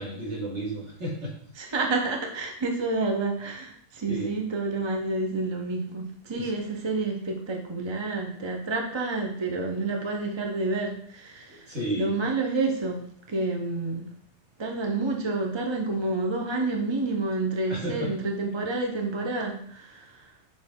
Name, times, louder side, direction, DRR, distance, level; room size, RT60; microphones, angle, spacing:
voice 1, 0.0-1.3 4.1-4.3 6.3-6.5 11.5-12.1 17.7-18.1, right 1 dB, 45° right, -4 dB, 2.2 m, -32 dB
voice 2, 1.6-13.0 13.3-14.1 14.6-20.3, right 3 dB, 30° right, 1 dB, 0.5 m, -29 dB
6.4 x 4.7 x 3.6 m, 0.64 s
omnidirectional pair, 1.7 m